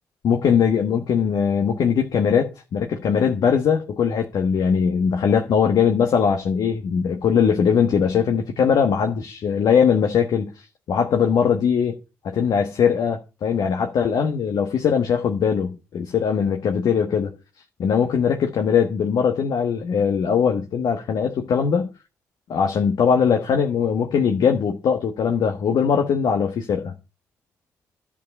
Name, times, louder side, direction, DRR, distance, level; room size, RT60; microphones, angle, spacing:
voice 1, 0.2-10.5 10.9-12.0 12.2-17.3 17.8-21.9 22.5-26.9, left 7 dB, 65° left, 1.3 m, -20 dB
11.0 x 7.4 x 5.4 m
hypercardioid pair, 45°, 7 cm